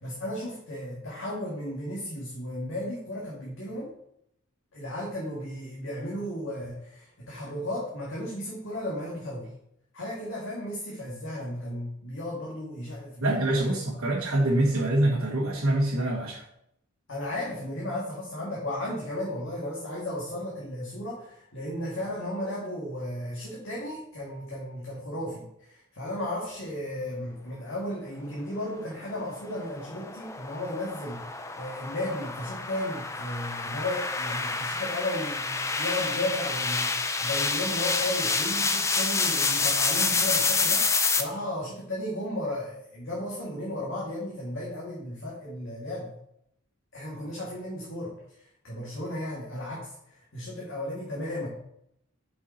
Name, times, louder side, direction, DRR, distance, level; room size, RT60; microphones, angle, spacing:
voice 1, 0.0-3.9 4.7-9.5 9.9-13.4 17.1-46.1 46.9-48.1 48.6-51.5, left 1 dB, 65° left, -5 dB, 1.7 m, -34 dB
voice 2, 13.2-16.4, right 1 dB, 75° right, -4 dB, 1.3 m, -25 dB
sound 1, 29.2-41.2, left 4 dB, 15° left, 0.3 m, -28 dB
5.7 x 5.4 x 4.3 m, 0.74 s
head